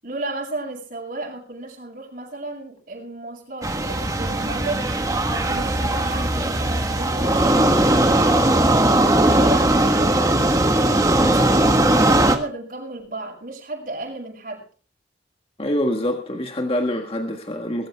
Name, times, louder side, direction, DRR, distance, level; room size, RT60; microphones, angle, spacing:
voice 1, 0.0-4.9 5.3-8.6 9.2-14.6, right 2 dB, 50° right, 7.0 m, -33 dB
sound 1, 3.6-12.4, right 1 dB, 20° right, 1.5 m, -19 dB
voice 2, 15.6-17.9, left 1 dB, 30° left, 1.6 m, -25 dB
22.0 x 13.0 x 3.5 m
head